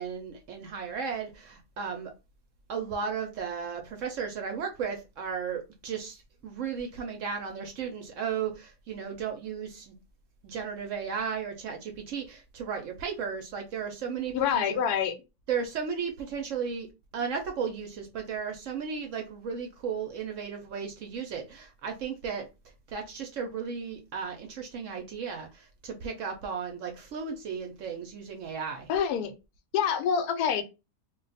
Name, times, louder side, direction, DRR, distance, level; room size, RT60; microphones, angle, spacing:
voice 1, 0.0-2.1 2.7-10.0 10.4-14.8 15.5-16.9 17.1-22.5 22.9-28.9, right 6 dB, 65° right, 0.8 m, -35 dB
voice 2, 14.3-15.1 28.9-29.3 29.7-30.6, left 7 dB, 85° left, 1.1 m, -26 dB
2.5 x 2.2 x 3.9 m
omnidirectional pair, 1.6 m